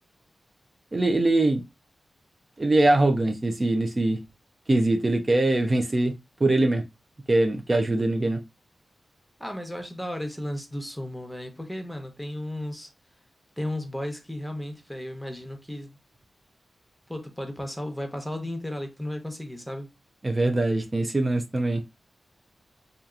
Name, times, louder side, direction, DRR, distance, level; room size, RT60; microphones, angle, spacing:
voice 1, 0.9-1.6 2.6-4.2 4.7-6.1 6.4-6.8 7.3-8.4 20.2-21.8, right 2 dB, 40° right, 0.4 m, -22 dB
voice 2, 9.4-12.9 13.6-16.0 17.1-19.9, left 1 dB, 5° left, 0.8 m, -34 dB
2.7 x 2.4 x 2.4 m
cardioid pair, 40°, 0 cm